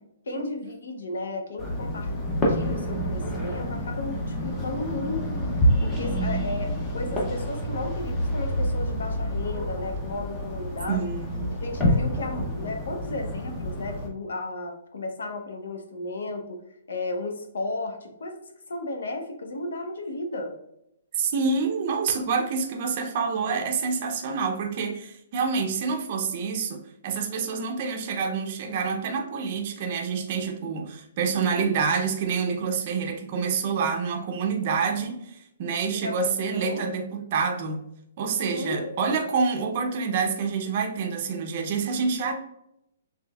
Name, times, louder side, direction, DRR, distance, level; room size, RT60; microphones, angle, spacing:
voice 1, 0.3-2.1 2.5-5.4 5.8-11.1 11.6-16.6 16.9-20.5 31.3-31.9 35.9-36.9 38.5-39.3, left 2 dB, 85° left, 4 dB, 1.0 m, -34 dB
sound 1, 1.6-14.1, equal, 15° left, 0.6 m, -28 dB
voice 2, 10.9-11.6 21.1-37.8 38.2-42.3, right 5 dB, 30° right, 2 dB, 0.5 m, -27 dB
5.1 x 3.3 x 2.3 m, 0.79 s
hypercardioid pair, 175°, 0 cm